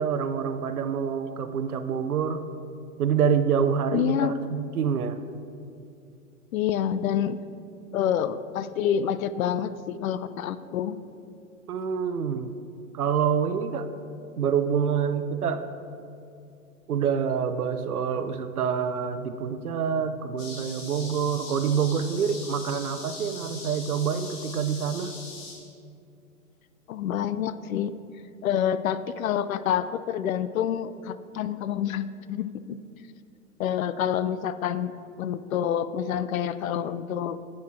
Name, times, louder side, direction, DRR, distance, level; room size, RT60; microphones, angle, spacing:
voice 1, 0.0-2.4 3.0-5.2 11.7-12.5 12.9-13.9 14.4-15.6 16.9-25.1, right 7 dB, 85° right, 10 dB, 0.7 m, -26 dB
voice 2, 3.9-4.3 6.5-7.4 7.9-11.0 26.9-28.0 28.4-32.8 33.6-34.9 35.2-37.4, left 9 dB, 70° left, 14 dB, 0.5 m, -27 dB
sound 1, 20.4-25.5, left 3 dB, 40° left, 2.1 m, -41 dB
8.8 x 5.8 x 4.3 m, 2.5 s
hypercardioid pair, 110°, 43 cm